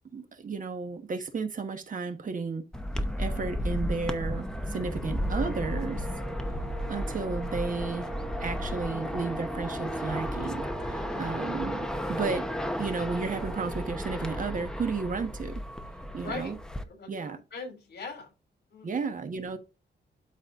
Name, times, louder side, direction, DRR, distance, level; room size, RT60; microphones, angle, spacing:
voice 1, 0.0-2.7 3.2-6.1 6.9-8.1 8.4-12.5 12.8-15.6 16.1-16.6 17.1-17.4 18.8-19.6, right 4 dB, 50° right, 1.3 m, -33 dB
sound 1, 2.7-16.8, equal, 5° left, 0.8 m, -33 dB
Brass instrument, 5.3-14.2, right 3 dB, 20° right, 1.7 m, -43 dB
voice 2, 11.0-11.3 16.2-18.3 18.7-18.9, left 3 dB, 65° left, 3.6 m, -41 dB
12.5 x 4.3 x 2.5 m
wide cardioid pair, 160°, 18 cm